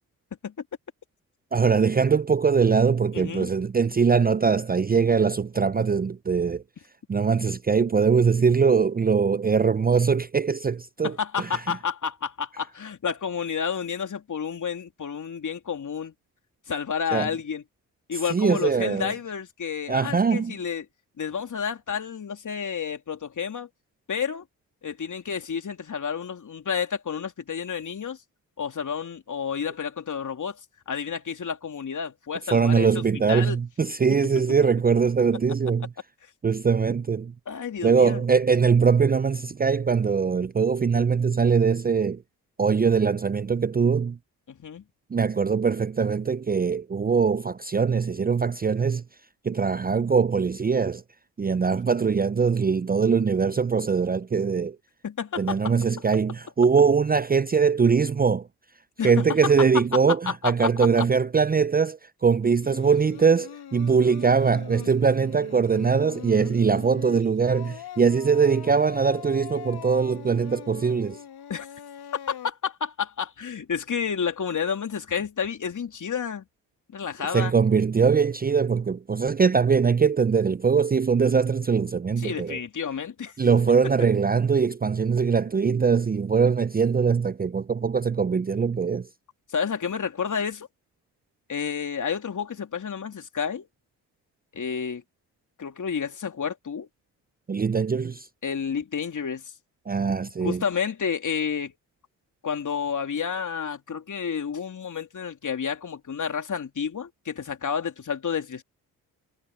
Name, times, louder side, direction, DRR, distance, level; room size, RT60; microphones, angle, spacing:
voice 1, 1.5-6.6 7.1-11.5 17.1-17.3 18.3-19.1 19.9-20.5 32.5-35.9 36.4-37.3 37.8-42.2 42.6-44.2 45.1-49.0 49.4-51.0 51.4-54.8 55.4-58.5 59.0-71.2 77.3-82.6 83.4-89.1 97.5-98.3 99.9-100.6, right 5 dB, 20° right, 0.6 m, -22 dB
voice 2, 3.1-3.5 11.0-16.1 16.7-17.6 18.1-20.8 21.2-23.7 24.1-24.4 24.8-28.2 28.6-30.6 30.9-33.0 33.3-33.6 37.5-38.2 44.5-44.8 55.0-55.7 59.0-59.2 60.1-60.7 71.5-71.7 72.3-76.4 76.9-77.5 82.2-83.3 89.5-90.7 91.5-93.7 94.5-95.0 95.6-96.9 98.4-99.5 100.4-101.7 102.4-108.6, left 7 dB, 45° left, 3.3 m, -30 dB
Singing, 62.6-72.5, left 10 dB, 65° left, 2.7 m, -42 dB
hypercardioid pair, 50°, 42 cm